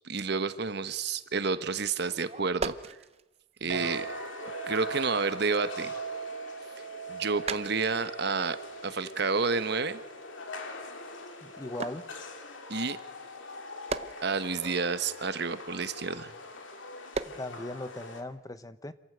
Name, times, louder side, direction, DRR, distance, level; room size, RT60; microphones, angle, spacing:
voice 1, 0.0-3.0 3.6-4.1 4.6-5.9 7.1-8.6 8.8-10.0 12.7-13.0 14.2-16.3, right 4 dB, 55° right, 12 dB, 1.1 m, -30 dB
sound 1, 1.0-1.4 1.8-5.0 5.3-11.1 11.7-16.4 16.9-17.6 18.0-18.2, right 4 dB, 30° right, 0.7 m, -42 dB
sound 2, 3.7-18.2, left 3 dB, 80° left, 2.4 m, -44 dB
Chink clink, 3.7-12.4, right 6 dB, 90° right, 1.3 m, -41 dB
voice 2, 11.4-12.1 17.3-18.9, left 2 dB, 20° left, 13 dB, 0.7 m, -39 dB
26.5 x 14.5 x 7.9 m, 1.1 s
head